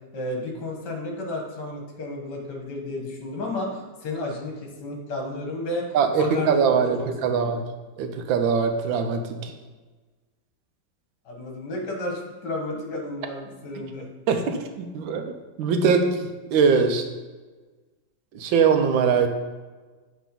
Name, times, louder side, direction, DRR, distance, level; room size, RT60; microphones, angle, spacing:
voice 1, 0.1-6.6 7.2-7.5 11.3-14.1, left 2 dB, 60° left, 1 dB, 1.8 m, -32 dB
voice 2, 5.9-7.6 8.0-9.5 14.3-15.2 15.6-16.2 16.5-17.0 18.3-19.3, right 6 dB, 80° right, 6 dB, 1.4 m, -22 dB
7.8 x 3.6 x 5.2 m, 1.3 s
omnidirectional pair, 2.1 m